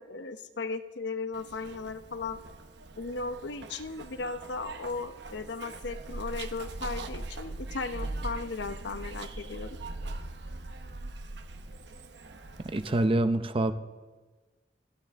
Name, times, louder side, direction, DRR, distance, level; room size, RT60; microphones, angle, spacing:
voice 1, 0.0-2.4 3.0-9.8, left 3 dB, 85° left, 10 dB, 0.8 m, -36 dB
Zipper (clothing), 1.3-13.1, right 2 dB, 75° right, 1.0 m, -41 dB
voice 2, 12.7-13.7, right 2 dB, 30° right, 10 dB, 0.6 m, -25 dB
28.5 x 11.5 x 3.5 m, 1.3 s
head